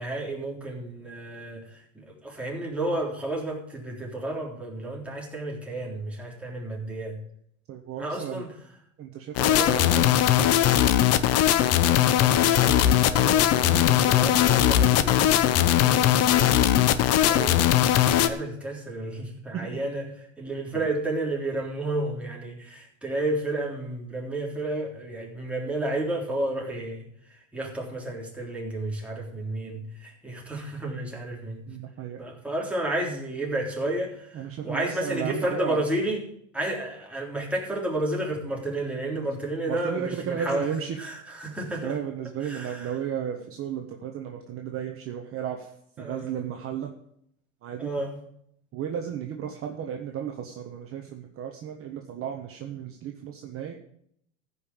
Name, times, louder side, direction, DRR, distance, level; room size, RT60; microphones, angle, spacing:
voice 1, 0.0-7.2 8.0-8.5 9.4-9.9 10.3-10.5 11.8-16.5 16.9-31.6 32.2-36.2 36.5-40.7 41.0-42.0 42.4-43.0 46.0-46.4 47.8-48.2, right 1 dB, 5° right, -3 dB, 3.6 m, -32 dB
voice 2, 7.7-8.4 9.0-10.1 13.1-13.5 19.5-19.8 31.7-32.2 34.3-35.8 39.7-41.0 41.8-45.7 46.0-46.9 47.6-47.9 48.7-53.7, right 9 dB, 35° right, 3 dB, 1.3 m, -34 dB
sound 1, 9.4-18.3, left 12 dB, 40° left, 0.9 m, -20 dB
14.5 x 5.7 x 7.0 m, 0.69 s
supercardioid pair, 120°, 39 cm